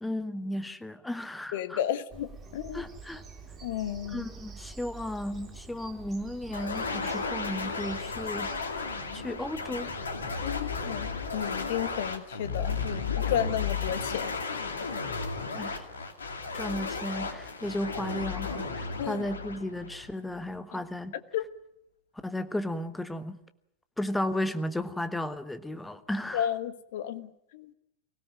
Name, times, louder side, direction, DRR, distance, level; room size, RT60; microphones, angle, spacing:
voice 1, 0.0-1.8 2.7-3.2 4.1-8.8 9.1-9.9 15.5-15.9 16.5-21.1 22.2-23.4 24.0-26.5, left 1 dB, 5° left, 11 dB, 1.4 m, -34 dB
voice 2, 1.5-2.8 3.6-4.3 10.4-14.6 19.0-19.2 21.3-21.4 26.3-27.7, left 10 dB, 55° left, 12 dB, 1.4 m, -33 dB
Bird vocalization bird call bird song, 2.1-12.1, right 4 dB, 20° right, 3.5 m, -47 dB
sound 1, 6.5-20.4, left 4 dB, 70° left, 2.4 m, -34 dB
24.0 x 17.0 x 9.1 m, 0.79 s
figure-of-eight pair, 90°, 0 cm